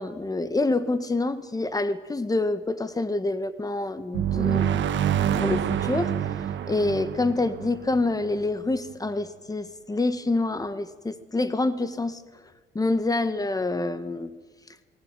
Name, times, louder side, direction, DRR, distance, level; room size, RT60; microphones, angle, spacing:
voice 1, 0.0-4.9 5.3-6.1 6.7-12.2 12.7-14.3, left 2 dB, 20° left, 12 dB, 1.5 m, -27 dB
sound 1, 4.1-8.7, right 9 dB, 70° right, 1.5 m, -27 dB
20.0 x 18.5 x 9.1 m, 1.3 s
cardioid pair, 90°, 20 cm